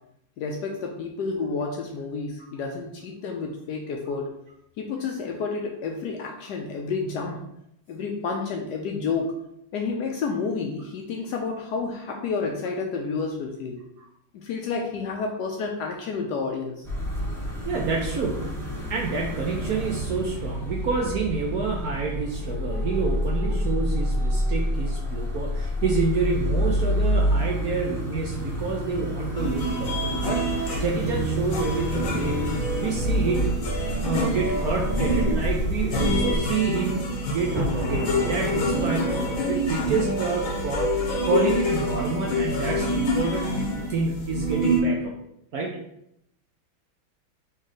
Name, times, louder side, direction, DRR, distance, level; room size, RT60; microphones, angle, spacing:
voice 1, 0.4-4.3 4.8-7.5 7.9-9.4 9.7-13.8 14.3-16.9, left 4 dB, 75° left, 2 dB, 1.0 m, -30 dB
sound 1, 16.8-36.4, equal, ahead, 0.6 m, -28 dB
voice 2, 17.6-18.5 18.9-32.4 32.8-33.5 34.0-37.0 37.3-43.5 43.9-45.1 45.5-45.8, right 4 dB, 70° right, -1 dB, 0.9 m, -28 dB
sound 2, 29.4-44.8, equal, 55° left, 1.0 m, -27 dB
Thunder, 37.3-41.5, equal, 40° right, 1.7 m, -33 dB
4.2 x 3.2 x 3.8 m, 0.79 s
omnidirectional pair, 2.1 m